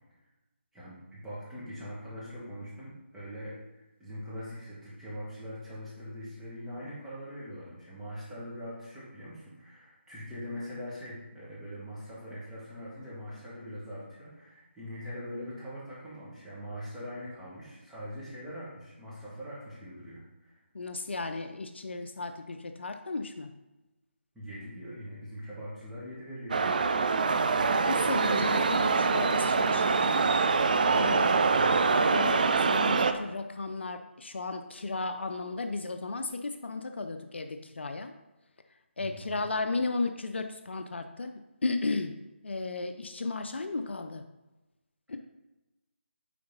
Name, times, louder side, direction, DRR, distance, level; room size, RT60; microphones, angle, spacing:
voice 1, 0.7-20.6 24.3-26.8 30.8-31.9 39.0-39.4, equal, 5° right, -9 dB, 1.7 m, -42 dB
voice 2, 20.7-23.5 27.9-30.3 30.9-31.6 32.1-38.1 39.0-42.2 42.4-44.2 45.1-45.2, left 3 dB, 60° left, 7 dB, 0.6 m, -34 dB
sound 1, 26.5-33.1, right 4 dB, 40° right, 0.5 m, -25 dB
9.3 x 4.0 x 4.0 m, 1.0 s
figure-of-eight pair, 165°, 7 cm